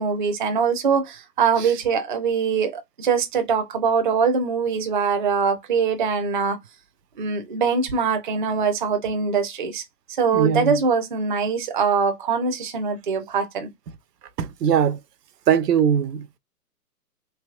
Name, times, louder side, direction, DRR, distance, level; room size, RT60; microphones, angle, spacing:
voice 1, 0.0-6.6 7.2-9.8 10.2-13.7, right 5 dB, 35° right, 0.4 m, -23 dB
voice 2, 10.3-10.8 14.4-15.0 15.5-16.3, right 8 dB, 80° right, 0.6 m, -20 dB
3.3 x 2.7 x 2.3 m
hypercardioid pair, 145°, 48 cm